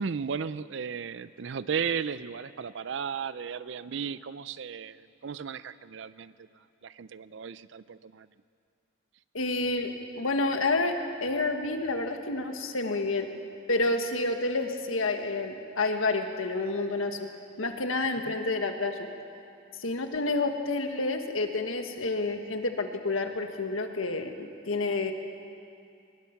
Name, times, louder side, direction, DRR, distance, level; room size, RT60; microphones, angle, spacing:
voice 1, 0.0-6.3 6.8-8.3, right 6 dB, 65° right, 16 dB, 0.4 m, -35 dB
voice 2, 9.3-9.9 10.2-10.9 11.2-13.3 13.7-17.3 17.6-19.1 19.8-25.1, left 2 dB, 85° left, 5 dB, 1.6 m, -29 dB
23.5 x 20.0 x 5.9 m, 2.5 s
head